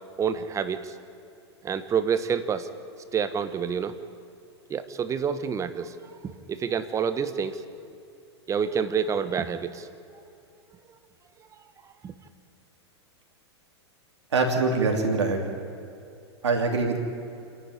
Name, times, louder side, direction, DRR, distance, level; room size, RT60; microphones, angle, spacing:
voice 1, 0.2-0.9 1.6-2.7 3.1-4.0 4.7-5.9 6.5-7.6 8.5-9.9 12.0-12.1, right 7 dB, 20° right, 11 dB, 1.3 m, -28 dB
voice 2, 14.3-15.4 16.4-17.0, right 3 dB, 90° right, 2 dB, 2.9 m, -23 dB
27.5 x 11.0 x 9.8 m, 2.6 s
hypercardioid pair, 120°, 14 cm